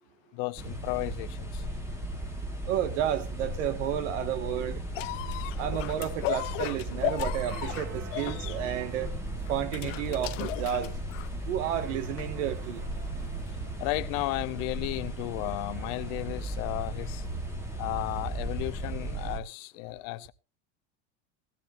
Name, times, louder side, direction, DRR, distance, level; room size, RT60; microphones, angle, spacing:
voice 1, 0.3-1.6 8.1-8.3 13.8-17.2 17.8-20.3, left 21 dB, 40° left, 0.7 m, -34 dB
sound 1, 0.6-19.4, right 1 dB, 5° right, 1.8 m, -36 dB
voice 2, 2.7-4.8 5.5-9.2 9.5-10.9 11.5-12.8, right 10 dB, 75° right, 1.9 m, -31 dB
sound 2, 4.9-11.4 12.2-12.3, left 21 dB, 75° left, 0.7 m, -35 dB
sound 3, 5.6-18.5, right 7 dB, 30° right, 1.2 m, -49 dB
17.5 x 15.0 x 2.6 m
supercardioid pair, 175°, 38 cm